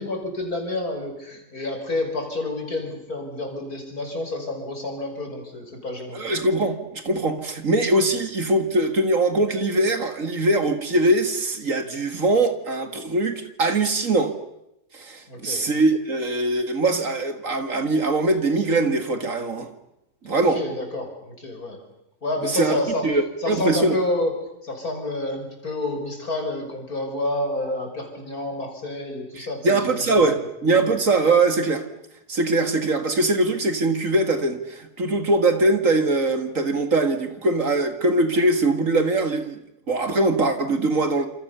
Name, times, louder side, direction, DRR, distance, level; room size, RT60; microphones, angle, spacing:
voice 1, 0.0-6.2 15.3-15.6 20.3-21.8 22.2-23.1 23.4-24.3 24.6-30.5, left 2 dB, 70° left, 4 dB, 6.3 m, -29 dB
voice 2, 6.1-14.3 14.9-19.7 20.2-20.6 22.4-22.8 23.0-24.0 29.4-31.8 32.3-39.6 39.9-41.3, right 2 dB, 55° right, 8 dB, 2.5 m, -22 dB
28.5 x 27.0 x 7.0 m, 0.85 s
omnidirectional pair, 1.6 m